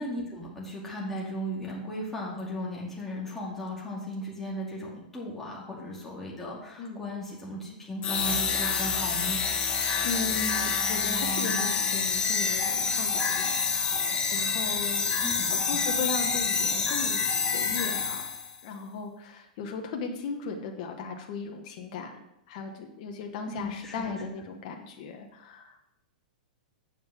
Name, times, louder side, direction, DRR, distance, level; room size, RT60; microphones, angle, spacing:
voice 1, 0.0-9.4 15.2-15.5 15.7-15.8 23.5-24.2, equal, 5° left, -5 dB, 2.3 m, -36 dB
sound 1, 8.0-18.6, left 5 dB, 25° left, 1.6 m, -27 dB
voice 2, 10.0-13.6 14.3-18.3 18.6-22.1 22.5-25.8, left 4 dB, 55° left, 3 dB, 1.2 m, -37 dB
7.8 x 5.3 x 6.0 m, 0.83 s
hypercardioid pair, 120°, 5 cm